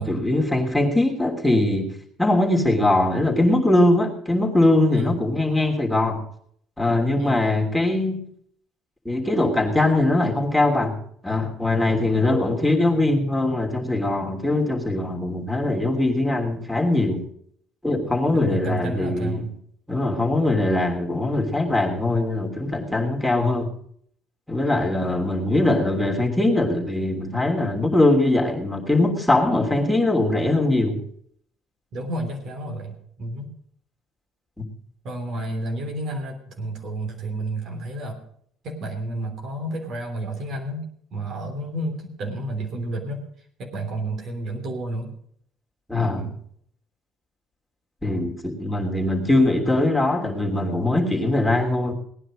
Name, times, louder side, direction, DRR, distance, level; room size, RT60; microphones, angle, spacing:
voice 1, 0.0-1.9 2.2-6.2 6.8-8.2 9.0-11.0 11.2-17.2 17.8-19.5 19.9-23.7 24.5-31.0 34.6-34.7 45.9-46.2 48.0-51.9, left 2 dB, 5° left, -1 dB, 3.1 m, -21 dB
voice 2, 18.3-19.5 24.6-24.8 31.9-33.5 35.0-38.2 38.6-43.2 43.6-45.1 46.0-46.4, right 1 dB, 60° right, 3 dB, 3.3 m, -31 dB
18.0 x 9.8 x 5.0 m, 0.65 s
hypercardioid pair, 65°, 0 cm